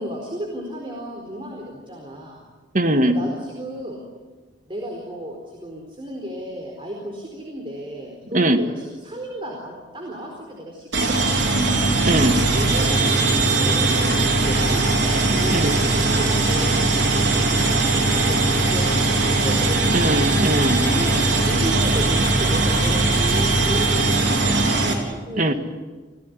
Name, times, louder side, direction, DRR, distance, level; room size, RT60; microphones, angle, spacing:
voice 1, 0.0-2.4 3.0-4.0 4.7-11.7 12.5-20.1 20.8-25.5, equal, 30° right, 0 dB, 4.4 m, -34 dB
voice 2, 2.7-3.2 8.3-8.6 12.0-12.4 15.5-15.7 19.9-20.8 25.4-25.5, right 1 dB, 45° right, 8 dB, 1.8 m, -20 dB
sound 1, 10.9-24.9, right 2 dB, 85° right, 4.3 m, -20 dB
29.0 x 16.5 x 9.8 m, 1.3 s
head